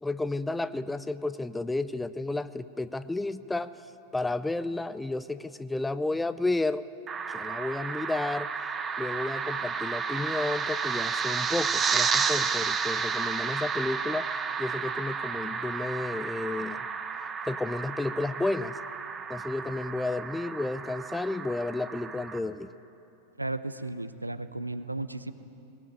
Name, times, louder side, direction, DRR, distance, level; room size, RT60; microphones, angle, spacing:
voice 1, 0.0-3.7 4.1-6.8 7.3-8.5 9.0-14.3 14.6-16.9 17.5-18.8 19.3-22.7, left 2 dB, 5° left, 15 dB, 0.6 m, -32 dB
sound 1, 7.1-22.4, right 5 dB, 20° right, 1.1 m, -32 dB
voice 2, 23.4-25.3, right 2 dB, 85° right, 11 dB, 0.8 m, -34 dB
20.5 x 19.0 x 9.1 m, 2.9 s
figure-of-eight pair, 90°, 0 cm